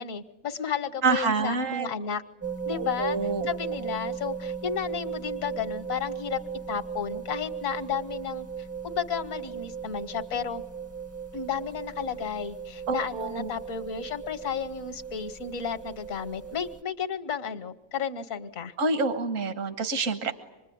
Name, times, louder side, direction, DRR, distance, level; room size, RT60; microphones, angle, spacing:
voice 1, 0.0-2.2 2.6-3.2 3.4-6.4 6.7-10.6 11.3-18.7, left 7 dB, 65° left, 8 dB, 1.4 m, -33 dB
voice 2, 1.0-1.9 2.7-3.5 12.9-13.5 18.8-20.3, right 3 dB, 70° right, 9 dB, 1.8 m, -27 dB
sound 1, 2.4-16.8, right 6 dB, 15° right, 0.6 m, -37 dB
26.5 x 21.0 x 9.4 m, 1.1 s
omnidirectional pair, 1.4 m